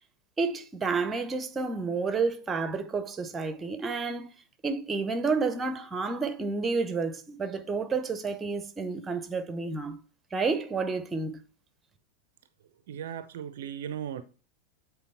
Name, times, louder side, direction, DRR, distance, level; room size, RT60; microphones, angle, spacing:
voice 1, 0.4-4.3 4.6-10.0 10.3-11.4, right 4 dB, 15° right, 1.0 m, -30 dB
voice 2, 12.9-14.2, right 9 dB, 55° right, 0.5 m, -37 dB
8.4 x 4.4 x 4.2 m
figure-of-eight pair, 90°, 0 cm